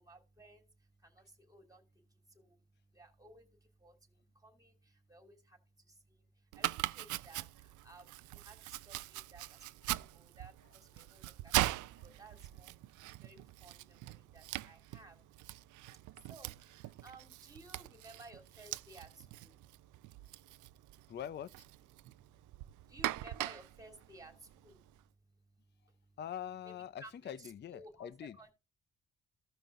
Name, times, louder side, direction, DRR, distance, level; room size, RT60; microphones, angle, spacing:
voice 1, 0.0-2.6 2.9-15.3 16.1-21.1 22.0-26.2 26.6-26.7 27.0-28.5, right 2 dB, 10° right, 2.8 m, -58 dB
Domestic sounds home sounds, 6.5-25.0, right 17 dB, 80° right, 0.5 m, -42 dB
voice 2, 21.1-21.5 26.2-28.4, left 9 dB, 35° left, 0.5 m, -44 dB
15.5 x 5.4 x 2.5 m
cardioid pair, 90°, 30 cm